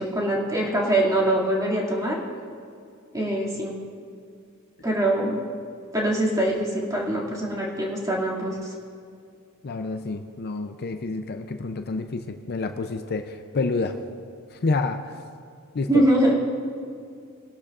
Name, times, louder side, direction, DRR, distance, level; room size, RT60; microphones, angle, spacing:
voice 1, 0.0-2.2 3.1-3.8 4.8-5.4 5.9-8.7 15.9-16.3, right 1 dB, 15° right, -4 dB, 2.3 m, -23 dB
voice 2, 9.6-14.0 14.5-15.2 15.7-16.0, left 3 dB, 50° left, 7 dB, 0.5 m, -28 dB
20.0 x 12.0 x 2.5 m, 2.3 s
head